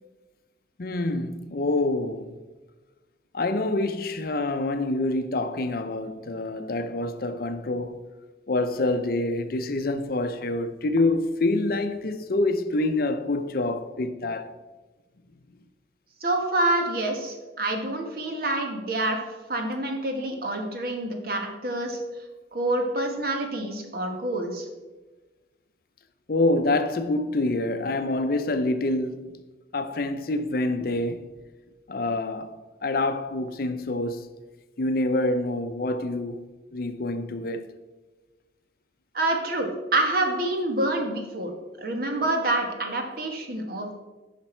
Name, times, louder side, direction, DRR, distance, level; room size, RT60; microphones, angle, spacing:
voice 1, 0.8-2.4 3.3-8.0 8.5-14.5 26.3-29.3 29.7-31.3 31.9-32.5 32.8-34.3 34.8-37.7, left 2 dB, 55° left, 0.6 m, -26 dB
voice 2, 16.2-19.2 19.5-22.0 22.5-24.7 39.1-41.5 41.8-44.0, right 2 dB, 55° right, 1.4 m, -27 dB
10.5 x 5.9 x 4.4 m
head